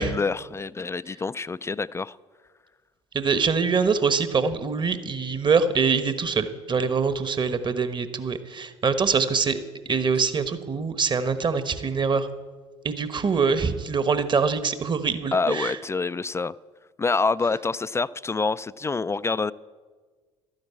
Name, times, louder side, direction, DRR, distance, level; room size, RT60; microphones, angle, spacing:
voice 1, 0.0-2.2 15.3-16.5 17.0-19.5, left 4 dB, 20° left, 16 dB, 0.3 m, -26 dB
voice 2, 3.1-9.6 9.9-12.3 12.8-15.8, right 5 dB, 30° right, 12 dB, 1.2 m, -24 dB
12.0 x 10.5 x 8.3 m, 1.4 s
hypercardioid pair, 60°, 15 cm